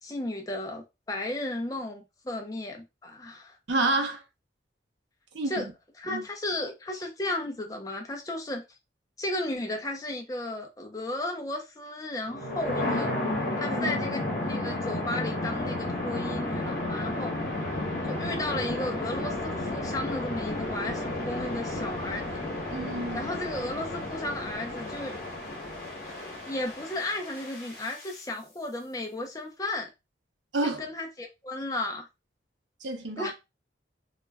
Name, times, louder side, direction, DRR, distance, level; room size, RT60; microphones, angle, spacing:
voice 1, 0.0-3.6 5.5-5.7 6.0-8.6 9.2-13.1 13.6-17.3 18.1-22.4 23.1-25.1 26.5-29.9 30.6-32.1 33.2-33.3, left 1 dB, 20° left, 0.4 m, -34 dB
voice 2, 3.7-4.2 5.3-5.7 6.1-6.2 13.7-14.0 17.6-17.7 22.7-23.2 30.5-30.8 32.8-33.3, right 2 dB, 70° right, 0.7 m, -29 dB
sound 1, 12.3-28.2, left 1 dB, 50° left, 0.9 m, -32 dB
2.3 x 2.1 x 3.2 m
head